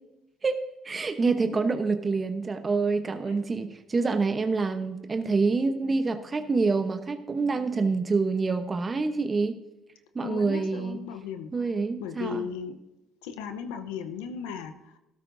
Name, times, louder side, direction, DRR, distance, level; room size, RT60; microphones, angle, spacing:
voice 1, 0.8-9.6 10.1-11.0 11.5-12.5, right 4 dB, 30° right, 8 dB, 0.9 m, -26 dB
voice 2, 10.2-11.7 12.0-12.8 13.2-15.0, left 7 dB, 90° left, 8 dB, 0.8 m, -36 dB
13.0 x 12.5 x 2.6 m, 0.97 s
supercardioid pair, 75°, 0 cm